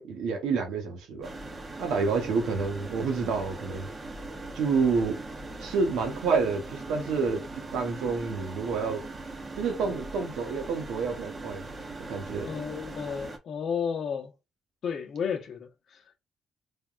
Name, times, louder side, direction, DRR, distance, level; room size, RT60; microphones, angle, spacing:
voice 1, 0.0-1.3 1.8-3.9 4.5-5.2 5.6-7.4 7.7-9.0 9.6-11.7 12.1-12.5, right 4 dB, 85° right, 0.9 m, -28 dB
sound 1, 1.2-13.4, right 2 dB, 30° right, 0.7 m, -40 dB
voice 2, 12.4-14.3 14.8-16.2, left 7 dB, 60° left, 0.6 m, -33 dB
3.4 x 2.2 x 2.4 m
cardioid pair, 90°, 0 cm